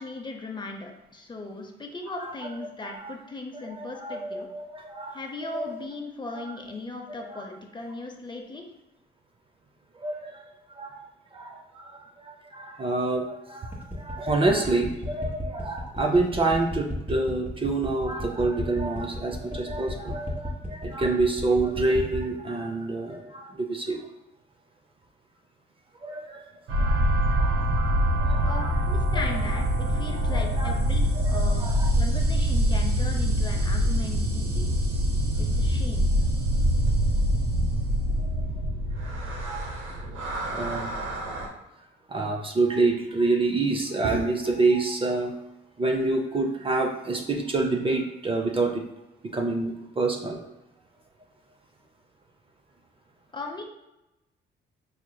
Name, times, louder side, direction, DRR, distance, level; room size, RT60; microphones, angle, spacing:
voice 1, 0.0-4.5 5.1-8.6 28.4-31.7 32.0-34.7 35.4-36.1 53.3-53.6, left 2 dB, 25° left, 2 dB, 0.6 m, -37 dB
voice 2, 2.8-3.1 3.7-5.2 5.5-5.7 7.1-7.4 10.0-24.1 26.0-26.5 26.7-27.0 27.3-28.7 30.3-30.8 31.2-31.9 38.2-38.3 39.4-39.7 40.5-41.0 42.1-45.4 45.8-48.8 49.3-50.4, right 3 dB, 25° right, 2 dB, 0.5 m, -27 dB
sound 1, 13.7-22.3, equal, 10° right, 1.2 m, -35 dB
sound 2, 26.7-41.5, equal, 75° right, 0.7 m, -25 dB
4.9 x 2.8 x 2.2 m, 0.93 s
cardioid pair, 90°, 20 cm